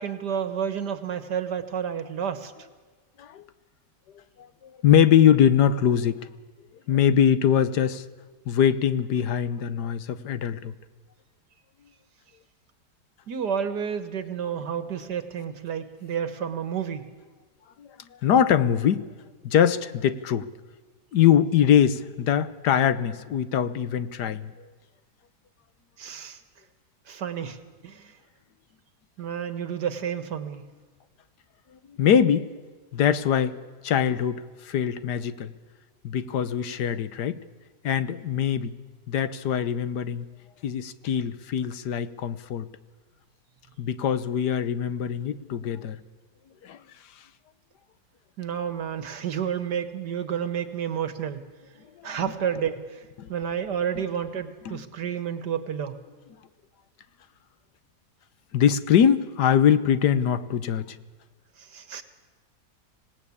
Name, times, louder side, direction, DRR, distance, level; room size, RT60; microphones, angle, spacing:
voice 1, 0.0-2.5 13.3-17.1 26.0-26.4 27.1-27.6 27.8-28.1 29.2-30.7 48.4-51.5 52.0-53.0 53.3-56.0 61.6-62.0, right 8 dB, 85° right, 10 dB, 2.1 m, -30 dB
voice 2, 4.8-6.3 6.9-8.0 8.5-10.7 17.8-17.9 18.2-19.0 19.4-20.5 21.1-24.5 32.0-32.5 32.9-33.6 33.8-35.5 36.0-37.4 37.8-38.7 39.1-40.2 40.6-42.7 43.8-46.0 46.6-46.8 53.2-53.3 54.7-54.8 58.5-61.0, left 9 dB, 85° left, 14 dB, 1.5 m, -22 dB
26.0 x 18.5 x 8.6 m, 1.4 s
omnidirectional pair, 1.7 m